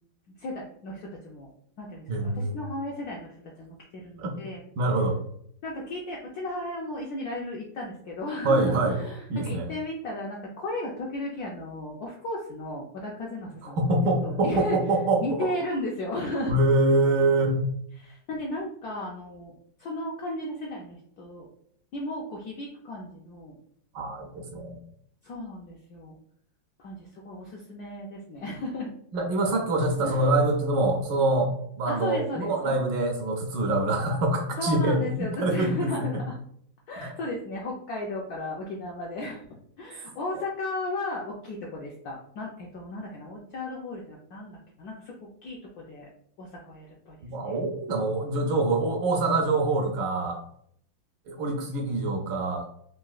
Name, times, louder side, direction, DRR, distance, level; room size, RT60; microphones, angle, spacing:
voice 1, 0.4-1.5 1.8-4.6 5.6-13.8 14.2-14.8 15.2-16.5 18.0-21.5 21.9-23.6 25.2-26.2 26.8-28.9 30.0-30.3 31.9-32.7 34.6-36.4 36.9-39.4 39.8-46.1 46.4-47.2 47.4-47.5, left 1 dB, 75° left, -2 dB, 0.8 m, -35 dB
voice 2, 2.1-2.6 4.2-4.3 4.8-5.2 8.4-9.0 9.3-9.7 13.6-15.5 16.5-17.6 23.9-24.8 29.1-35.9 47.2-50.4 51.3-52.7, right 2 dB, 75° right, 2 dB, 1.1 m, -25 dB
3.9 x 2.4 x 2.3 m, 0.67 s
omnidirectional pair, 2.1 m